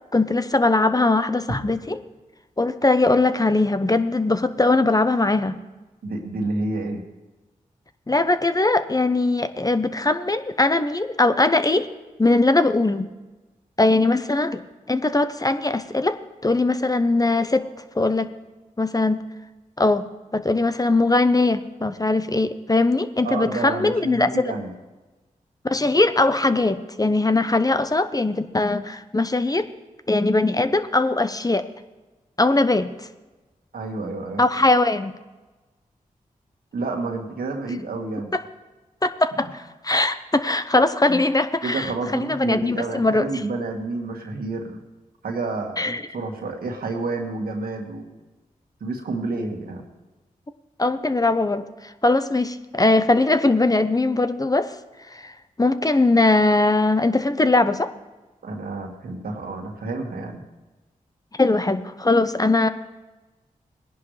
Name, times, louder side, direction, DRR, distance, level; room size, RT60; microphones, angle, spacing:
voice 1, 0.1-2.0 2.6-5.6 8.1-11.9 12.2-13.1 13.8-14.6 14.9-17.7 18.0-18.3 18.8-19.2 19.8-20.1 20.3-24.5 25.6-29.7 30.1-31.6 32.4-33.1 34.4-35.1 38.3-38.4 39.0-43.3 45.8-46.0 50.8-54.7 55.1-55.3 55.6-57.9 61.3-62.7, left 2 dB, 25° left, 11 dB, 0.8 m, -20 dB
voice 2, 6.0-7.0 23.2-24.7 33.7-34.4 36.7-38.3 41.1-41.2 41.6-44.8 45.2-48.1 48.8-49.8 58.4-60.4, right 3 dB, 80° right, 2 dB, 1.7 m, -29 dB
18.5 x 10.5 x 3.3 m, 1.1 s
cardioid pair, 40°, 15 cm